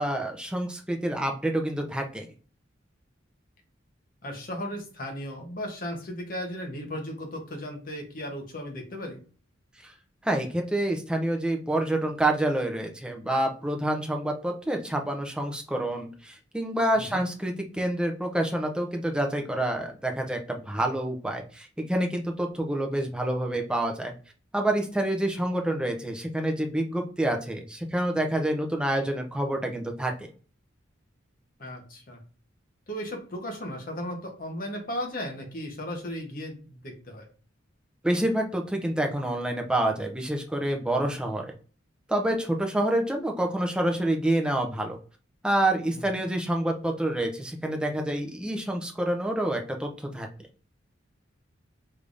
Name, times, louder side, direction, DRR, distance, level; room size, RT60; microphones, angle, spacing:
voice 1, 0.0-2.3 9.8-9.9 10.2-24.1 24.5-30.3 38.0-41.5 42.1-45.0 45.4-50.3, right 1 dB, 5° right, 2 dB, 0.5 m, -27 dB
voice 2, 4.2-9.2 16.9-17.3 31.6-32.2 32.9-37.3 45.9-46.2, equal, 45° left, 2 dB, 0.9 m, -36 dB
3.4 x 3.3 x 2.5 m, 0.38 s
head